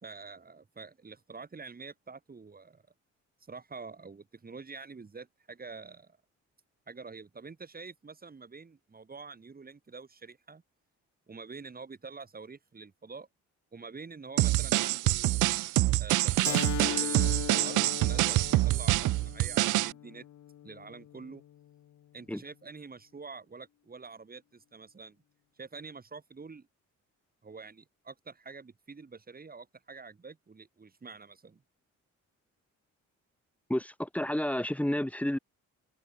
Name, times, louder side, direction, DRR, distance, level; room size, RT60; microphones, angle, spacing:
voice 1, 0.0-2.8 3.5-6.2 6.9-10.6 11.3-13.3 13.7-15.5 16.0-20.3 20.6-21.4 22.1-25.2 25.6-26.7 27.4-31.6, right 4 dB, 30° right, 5.0 m, -47 dB
sound 1, 14.4-19.9, right 17 dB, 80° right, 0.7 m, -26 dB
Keyboard (musical), 16.4-21.6, left 11 dB, 65° left, 2.1 m, -39 dB
voice 2, 33.7-35.4, left 1 dB, 5° left, 1.4 m, -30 dB
cardioid pair, 90°, 30 cm